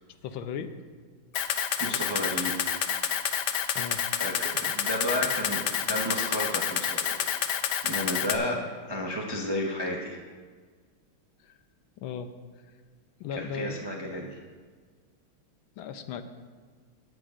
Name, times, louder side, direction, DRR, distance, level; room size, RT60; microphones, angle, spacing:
voice 1, 0.2-0.7 3.7-4.0 11.4-11.6 12.0-12.3 13.2-13.8 15.8-16.2, left 7 dB, 90° left, 9 dB, 1.5 m, -36 dB
Camera, 1.3-8.4, left 9 dB, 70° left, 1.1 m, -28 dB
voice 2, 1.8-2.8 4.2-7.2 7.8-10.2 13.3-14.4, equal, 35° right, -1 dB, 0.3 m, -32 dB
21.0 x 7.5 x 2.5 m, 1.5 s
omnidirectional pair, 2.2 m